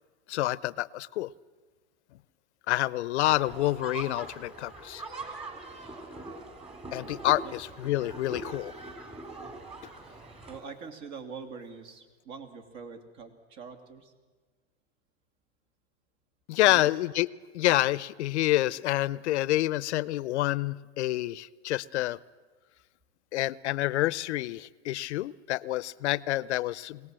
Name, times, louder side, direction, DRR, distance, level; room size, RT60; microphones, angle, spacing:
voice 1, 0.3-1.3 2.7-5.0 6.9-8.7 16.5-22.2 23.3-27.0, left 16 dB, 75° left, 20 dB, 0.7 m, -28 dB
sound 1, 3.2-10.6, right 2 dB, 20° right, 3.5 m, -42 dB
voice 2, 10.5-14.1 16.7-16.9, right 5 dB, 50° right, 7 dB, 2.9 m, -44 dB
22.5 x 18.0 x 7.6 m, 1.4 s
supercardioid pair, 125°, 34 cm